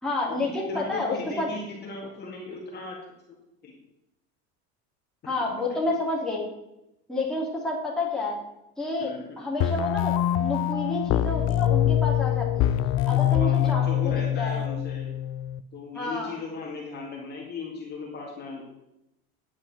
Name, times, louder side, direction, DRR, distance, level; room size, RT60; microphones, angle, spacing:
voice 1, 0.0-1.5 5.2-6.4 7.1-8.4 8.8-10.1 10.4-12.7 13.1-14.6 15.9-16.3, left 2 dB, ahead, -5 dB, 2.9 m, -30 dB
voice 2, 0.7-3.0 3.6-3.7 9.0-9.4 13.1-15.1 15.7-18.7, left 3 dB, 30° left, -2 dB, 2.2 m, -37 dB
sound 1, 9.6-15.6, left 11 dB, 50° left, 0.6 m, -24 dB
10.0 x 8.6 x 4.3 m, 0.88 s
cardioid pair, 140°, 32 cm